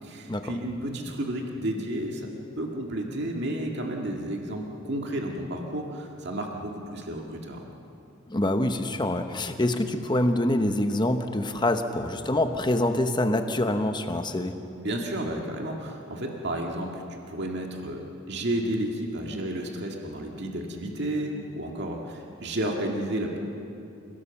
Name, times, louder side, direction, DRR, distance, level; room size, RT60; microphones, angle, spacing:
voice 1, 0.0-2.3 2.6-7.6 14.8-17.0 17.3-23.4, right 1 dB, 55° right, 1 dB, 2.1 m, -32 dB
voice 2, 8.3-14.6, left 1 dB, 20° left, 7 dB, 0.9 m, -25 dB
27.5 x 17.5 x 7.1 m, 2.7 s
head